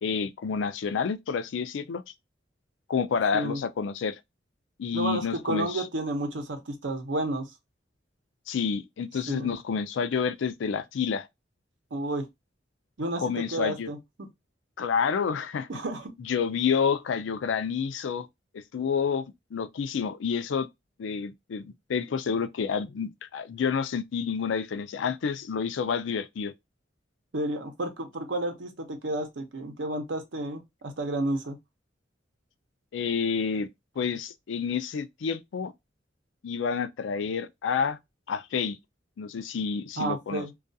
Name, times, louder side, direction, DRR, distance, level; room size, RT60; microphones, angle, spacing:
voice 1, 0.0-2.0 2.9-4.2 4.8-5.8 8.5-11.3 13.2-13.9 14.8-15.7 16.2-18.3 18.5-19.2 19.5-20.7 21.0-26.5 32.9-33.7 34.0-35.7 36.4-38.0 38.3-38.8 39.2-40.5, left 6 dB, 85° left, 0.4 m, -29 dB
voice 2, 4.9-7.5 9.3-9.5 11.9-12.3 13.0-14.0 15.7-16.1 27.3-31.6 40.0-40.6, right 1 dB, 80° right, 0.7 m, -31 dB
2.3 x 2.3 x 2.6 m
head